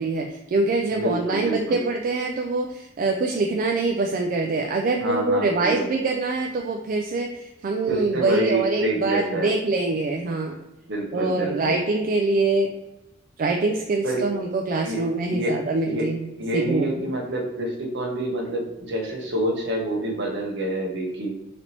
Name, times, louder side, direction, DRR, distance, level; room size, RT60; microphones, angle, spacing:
voice 1, 0.0-10.6 11.1-12.7 13.4-16.3 16.5-17.1, right 3 dB, 45° right, 2 dB, 0.3 m, -24 dB
voice 2, 0.9-1.8 5.0-5.9 7.9-9.5 10.9-11.8 14.0-14.2 14.8-15.0 15.3-15.5 15.9-16.1 16.4-21.4, right 1 dB, 65° right, 1 dB, 0.9 m, -27 dB
4.0 x 3.3 x 2.8 m, 1.0 s
head